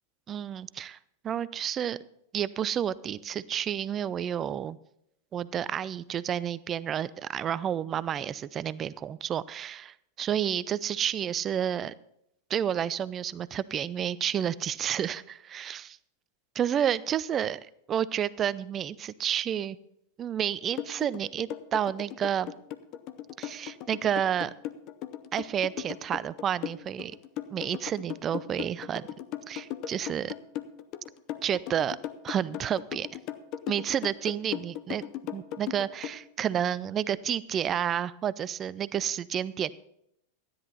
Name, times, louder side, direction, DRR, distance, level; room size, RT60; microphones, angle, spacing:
voice 1, 0.3-1.0 1.2-2.0 2.3-4.8 5.3-11.9 12.5-16.0 16.6-17.6 17.9-19.8 20.2-22.5 23.4-24.5 25.3-27.1 27.5-29.1 29.5-30.3 31.4-32.0 32.2-33.1 33.7-39.7, right 9 dB, 25° right, 19 dB, 0.4 m, -30 dB
sound 1, 20.8-36.2, left 12 dB, 40° left, 0.6 m, -37 dB
13.0 x 10.0 x 4.1 m, 0.77 s
figure-of-eight pair, 90°, 0 cm